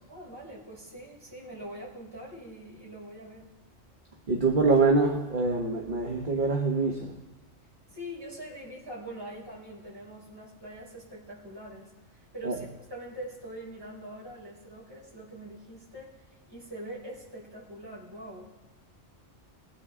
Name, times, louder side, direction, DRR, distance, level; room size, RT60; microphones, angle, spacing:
voice 1, 0.1-3.5 7.9-16.2 16.5-18.5, right 1 dB, 20° right, -7 dB, 4.4 m, -43 dB
voice 2, 4.3-7.1 12.4-12.6, right 3 dB, 45° right, 0 dB, 1.3 m, -25 dB
22.5 x 9.6 x 3.7 m, 1.2 s
omnidirectional pair, 1.2 m